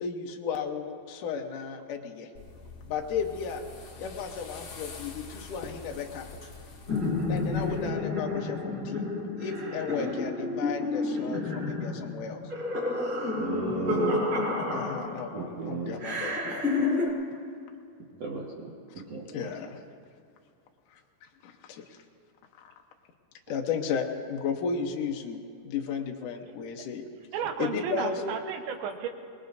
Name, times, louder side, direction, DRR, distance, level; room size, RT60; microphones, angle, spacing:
voice 1, 0.0-2.3 2.8-3.6 4.0-6.3 7.3-9.1 9.4-12.4 14.7-16.7 19.3-19.8 21.4-21.8 22.6-22.7 23.5-27.1 27.6-28.4, left 6 dB, 80° left, 2 dB, 1.8 m, -34 dB
sound 1, 2.3-7.9, left 4 dB, 55° left, 1.7 m, -45 dB
sound 2, 6.9-15.4 16.0-17.1, left 2 dB, 15° right, 4.0 m, -30 dB
voice 2, 13.4-14.3 15.3-16.0 18.2-18.7 19.1-19.5, right 3 dB, 60° right, -3 dB, 1.8 m, -34 dB
voice 3, 27.3-29.1, right 8 dB, 85° right, 5 dB, 3.4 m, -33 dB
26.5 x 20.5 x 2.7 m, 2.3 s
omnidirectional pair, 5.2 m